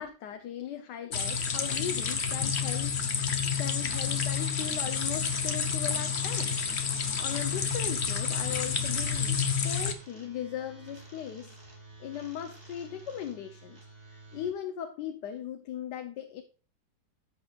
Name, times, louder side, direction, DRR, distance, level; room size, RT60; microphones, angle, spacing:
voice 1, 0.0-3.0 3.3-11.6 12.0-16.4, left 9 dB, 75° left, 7 dB, 1.4 m, -38 dB
sound 1, 1.1-9.9, left 6 dB, 45° left, 1.1 m, -29 dB
sound 2, 3.8-14.5, right 3 dB, 20° right, 2.9 m, -51 dB
13.5 x 6.8 x 2.4 m, 0.36 s
omnidirectional pair, 1.9 m